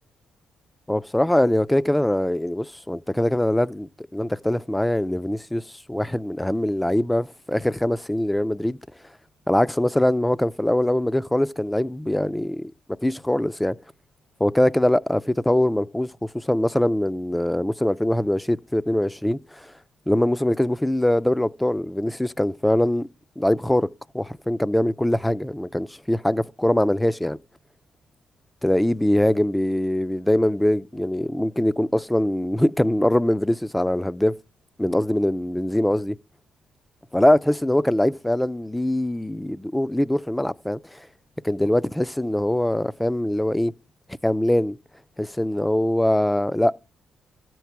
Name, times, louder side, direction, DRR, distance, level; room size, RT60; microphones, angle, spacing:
voice 1, 0.9-8.8 9.5-12.7 13.0-13.8 14.4-19.7 20.1-23.1 23.4-23.9 24.1-27.4 28.6-34.3 34.8-36.2 37.1-41.1 41.4-43.7 44.2-44.8 45.2-46.8, left 1 dB, 10° left, 0.4 m, -22 dB
13.0 x 4.6 x 7.2 m
supercardioid pair, 55°, 0 cm